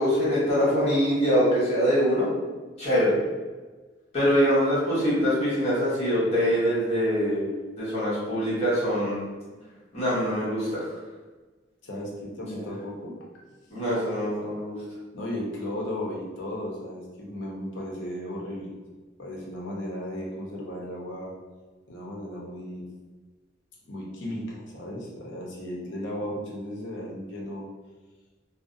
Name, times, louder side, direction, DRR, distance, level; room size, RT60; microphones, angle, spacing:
voice 1, 0.0-2.3 2.8-3.2 4.1-7.5 7.8-9.2 9.9-10.9 12.5-12.6 13.7-14.8, equal, 35° left, -10 dB, 0.9 m, -24 dB
voice 2, 9.1-9.8 11.8-13.6 15.1-18.7 19.2-21.3 21.9-22.9 23.9-27.7, left 1 dB, 75° left, -3 dB, 0.6 m, -35 dB
2.4 x 2.0 x 2.5 m, 1.3 s
head